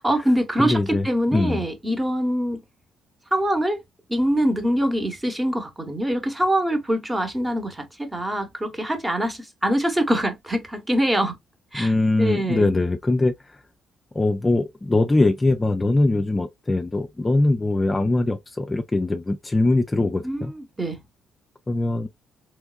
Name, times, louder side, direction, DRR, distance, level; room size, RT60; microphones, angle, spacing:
voice 1, 0.0-2.6 3.3-3.8 4.1-11.4 11.7-11.9 12.2-12.7 20.2-21.0, equal, 15° right, 1.0 m, -24 dB
voice 2, 0.6-1.7 11.7-13.6 14.1-20.5 21.7-22.1, left 2 dB, 20° left, 0.4 m, -22 dB
3.4 x 3.0 x 2.3 m
cardioid pair, 90°, 0 cm